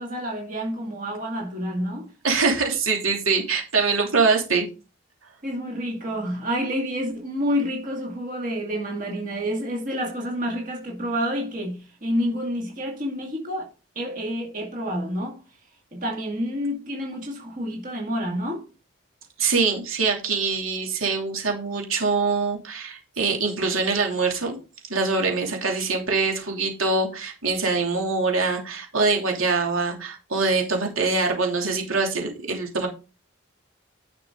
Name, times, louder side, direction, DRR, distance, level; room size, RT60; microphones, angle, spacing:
voice 1, 0.0-2.1 5.4-13.7 14.0-15.4 15.9-18.7, equal, 40° right, 2.2 m, -29 dB
voice 2, 2.2-4.7 19.4-24.5 24.9-32.9, right 4 dB, 85° right, 2.9 m, -24 dB
10.5 x 6.0 x 3.8 m
head